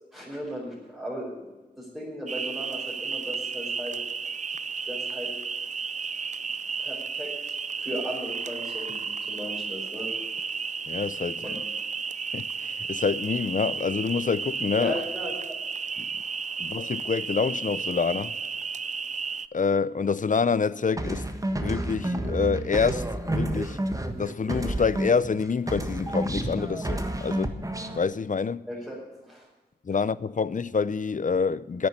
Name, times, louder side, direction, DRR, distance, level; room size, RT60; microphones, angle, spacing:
voice 1, 0.1-1.5 1.7-3.9 4.9-5.3 6.8-10.1 11.4-11.5 14.7-15.5 28.7-28.9 29.3-29.5, equal, 5° right, 5.1 m, -36 dB
sound 1, 2.3-19.5, right 5 dB, 45° right, 0.5 m, -33 dB
voice 2, 10.9-11.5 12.3-15.0 16.0-16.1 16.6-18.4 19.5-23.8 24.2-28.7 29.8-31.9, left 5 dB, 50° left, 0.5 m, -27 dB
sound 2, 21.0-25.4 25.7-28.0, right 1 dB, 20° right, 1.4 m, -30 dB
10.5 x 8.9 x 9.7 m
wide cardioid pair, 50°, 17 cm